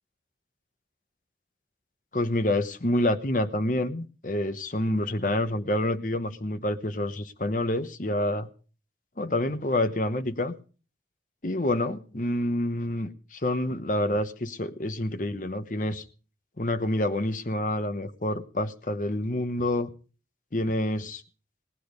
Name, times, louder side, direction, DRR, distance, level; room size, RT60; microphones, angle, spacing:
voice 1, 2.1-8.5 9.2-10.5 11.4-16.0 16.6-19.9 20.5-21.2, left 1 dB, 45° left, 1.0 m, -28 dB
18.5 x 10.0 x 5.1 m
head